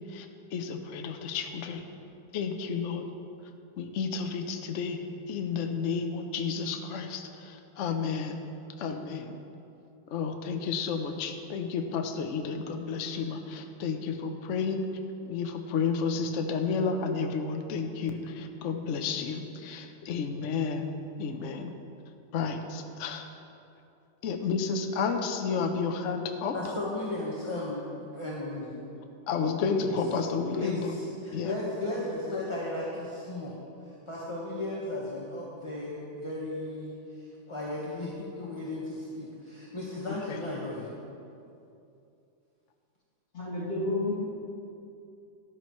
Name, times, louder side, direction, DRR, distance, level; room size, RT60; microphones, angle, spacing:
voice 1, 0.5-1.8 2.3-3.1 3.8-5.0 5.3-8.4 8.8-9.4 10.1-14.8 15.3-20.9 21.2-21.7 22.3-23.2 24.2-26.5 29.3-30.9 31.3-31.5 40.3-40.4, left 5 dB, 60° left, 5 dB, 0.8 m, -31 dB
voice 2, 26.5-28.8 29.8-30.0 30.5-33.5 33.8-40.9, left 2 dB, 20° left, -5 dB, 1.0 m, -35 dB
voice 3, 43.3-44.1, left 2 dB, 40° left, -14 dB, 2.8 m, -30 dB
14.0 x 11.0 x 3.1 m, 2.7 s
omnidirectional pair, 2.0 m